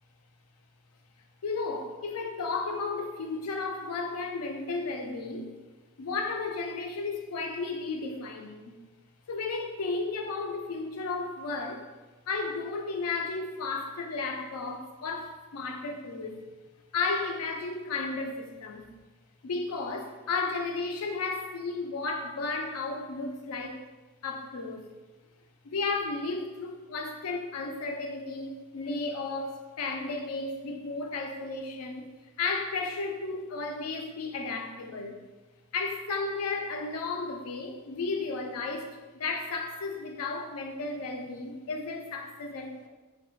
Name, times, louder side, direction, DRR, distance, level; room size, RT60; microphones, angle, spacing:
voice 1, 1.4-5.5 6.0-8.7 9.3-11.8 12.3-16.4 16.9-18.9 19.4-23.8 24.2-24.9 25.6-32.1 32.4-35.2 35.7-42.9, left 3 dB, 70° left, 0.4 m, -33 dB
3.1 x 2.1 x 3.0 m
head